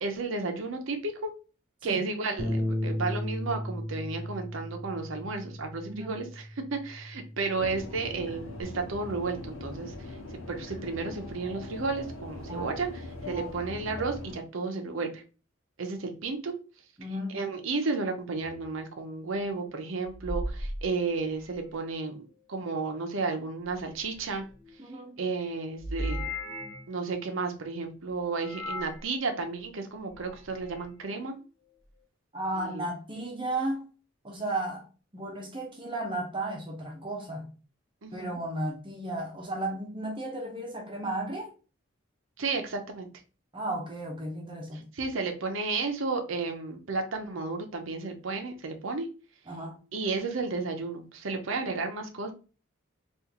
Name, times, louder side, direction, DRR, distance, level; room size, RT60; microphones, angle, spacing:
voice 1, 0.0-1.3 1.8-9.9 10.5-15.2 15.8-16.5 17.3-22.2 22.5-24.4 25.2-26.3 26.9-31.4 32.5-32.9 38.0-38.4 42.4-43.1 44.9-49.1 49.9-52.3, right 3 dB, 75° right, 0.6 m, -32 dB
Bass guitar, 2.4-8.6, left 1 dB, 25° left, 0.9 m, -35 dB
voice 2, 5.9-6.2 12.5-12.7 13.3-13.5 17.0-17.4 24.8-25.2 32.3-33.9 34.2-34.9 35.1-37.5 38.1-41.5 43.5-44.9 49.5-49.8, right 1 dB, 25° right, 0.7 m, -34 dB
sound 1, 7.6-14.4, left 2 dB, 85° left, 0.9 m, -41 dB
sound 2, 18.4-18.7 20.1-21.7 23.6-24.7 25.8-26.9 28.4-29.0 30.0-30.9, equal, 5° left, 1.8 m, -37 dB
3.7 x 2.5 x 2.8 m
head